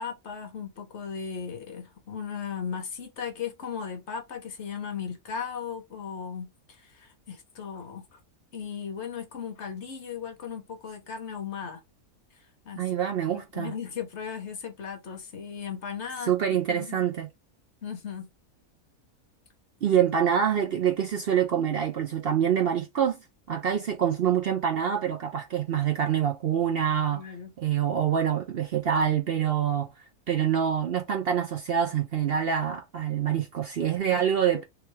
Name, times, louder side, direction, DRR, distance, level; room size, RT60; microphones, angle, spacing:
voice 1, 0.0-8.2 8.5-11.8 12.6-12.8 13.3-16.3 16.7-17.0 17.8-18.3 27.1-27.5 34.0-34.3, left 7 dB, 50° left, 1.2 m, -37 dB
voice 2, 12.8-13.7 16.3-17.3 19.8-23.2 23.5-27.2 27.6-29.9 30.3-34.6, right 8 dB, 60° right, 0.6 m, -26 dB
3.3 x 3.3 x 3.2 m
omnidirectional pair, 1.6 m